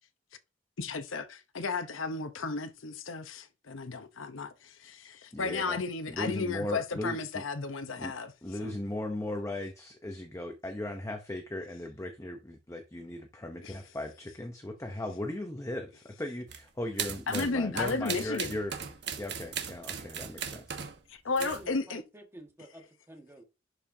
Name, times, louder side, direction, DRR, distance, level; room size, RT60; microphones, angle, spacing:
voice 1, 0.8-8.3 8.6-8.8 13.6-13.8 17.3-18.6 21.1-22.0, left 4 dB, 85° left, 0.9 m, -34 dB
voice 2, 5.3-5.8 6.1-7.4 8.0-8.1 8.4-18.7 19.2-20.8, left 1 dB, 15° left, 0.8 m, -37 dB
sound 1, 16.5-16.6 17.0-21.0 21.4-21.7, right 7 dB, 55° right, 1.3 m, -37 dB
voice 3, 21.4-23.4, right 1 dB, 15° right, 1.7 m, -50 dB
11.5 x 5.6 x 2.8 m
head